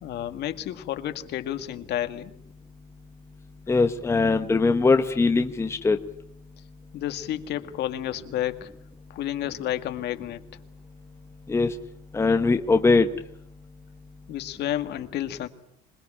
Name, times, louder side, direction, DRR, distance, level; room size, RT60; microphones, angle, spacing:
voice 1, 0.0-2.3 6.9-8.7 9.1-10.4 14.3-15.5, left 12 dB, 55° left, 9 dB, 1.9 m, -31 dB
voice 2, 3.7-6.0 11.5-11.7 12.1-13.1, left 3 dB, 10° left, 6 dB, 1.1 m, -21 dB
26.5 x 20.0 x 8.7 m, 0.69 s
cardioid pair, 150°, 21 cm